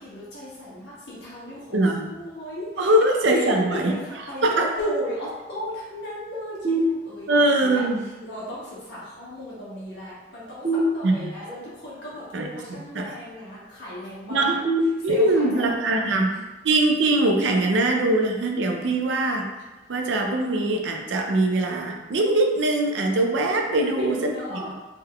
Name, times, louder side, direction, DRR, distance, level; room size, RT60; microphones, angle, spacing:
voice 1, 0.0-2.9 3.3-7.9 8.2-14.6 15.1-16.1 23.7-24.7, equal, 65° left, -8 dB, 1.4 m, -35 dB
voice 2, 1.7-2.1 2.8-3.9 4.4-4.7 7.3-8.0 11.0-11.3 12.3-13.0 14.3-14.6 15.0-16.3 16.6-19.5 19.9-24.6, right 2 dB, 75° right, 3 dB, 0.5 m, -22 dB
sound 1, 6.6-7.6 10.6-11.6 14.6-15.6, equal, 25° right, 0.7 m, -26 dB
3.5 x 3.4 x 2.3 m, 1.1 s
head